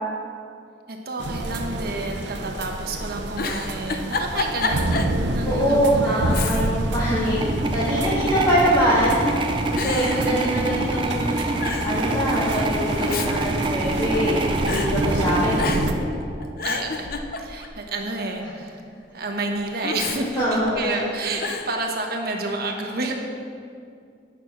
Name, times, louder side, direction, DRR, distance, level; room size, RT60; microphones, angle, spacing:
voice 1, 0.9-4.9 5.3-6.4 10.1-10.7 16.6-17.1 17.4-18.8 19.1-23.1, right 2 dB, 60° right, 2 dB, 1.1 m, -30 dB
sound 1, 1.2-15.9, right 2 dB, 85° right, 0.7 m, -29 dB
Giggle, 3.3-5.2 5.6-5.7 6.3-6.9 7.3-8.1 8.8-9.2 9.8-11.0 11.3-11.4 11.6-12.0 12.8-14.3 14.7-14.9 15.6-16.0 16.4-17.8 19.8-21.0 21.4-21.7, left 4 dB, 55° left, 0.6 m, -29 dB
voice 2, 5.4-15.8 18.4-18.5 20.4-21.1, equal, 20° left, -11 dB, 1.7 m, -24 dB
sound 2, 7.3-16.7, right 2 dB, 30° right, 0.6 m, -26 dB
9.2 x 6.1 x 5.8 m, 2.4 s
head